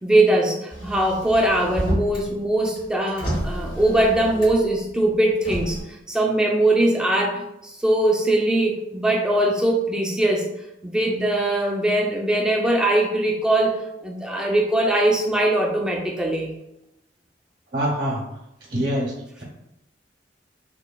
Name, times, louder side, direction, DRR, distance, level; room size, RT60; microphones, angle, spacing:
voice 1, 0.0-5.8 6.1-10.5 10.8-16.5, right 1 dB, 5° right, -2 dB, 0.4 m, -21 dB
Motor vehicle (road), 0.7-2.3 2.6-4.7 5.3-5.8, right 1 dB, 90° left, 1.5 m, -30 dB
voice 2, 17.7-18.4 18.7-19.4, equal, 60° right, -5 dB, 0.8 m, -25 dB
3.1 x 2.2 x 2.2 m, 0.86 s
head